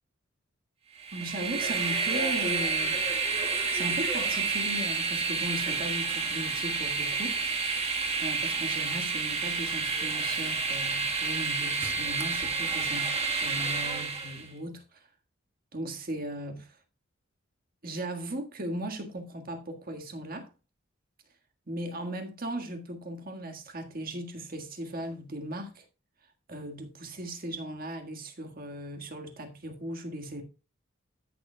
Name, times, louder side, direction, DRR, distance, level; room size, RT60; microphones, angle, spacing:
Train, 1.0-14.5, right 4 dB, 30° right, 1.5 m, -29 dB
voice 1, 1.1-3.0 3.7-7.5 8.2-15.0 15.7-16.8 17.8-20.5 21.7-25.8 26.5-30.4, right 1 dB, 50° right, 1.7 m, -37 dB
14.0 x 6.9 x 2.3 m
head